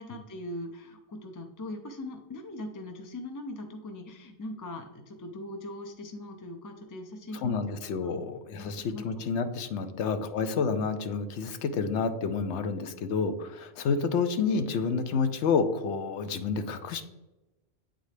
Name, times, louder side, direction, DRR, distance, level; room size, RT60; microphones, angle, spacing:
voice 1, 0.0-7.6 8.6-9.2 9.8-10.3, left 1 dB, 30° left, 4 dB, 0.3 m, -41 dB
voice 2, 7.3-17.0, left 5 dB, 90° left, 9 dB, 0.9 m, -29 dB
8.3 x 3.9 x 3.2 m, 1.0 s
omnidirectional pair, 1.1 m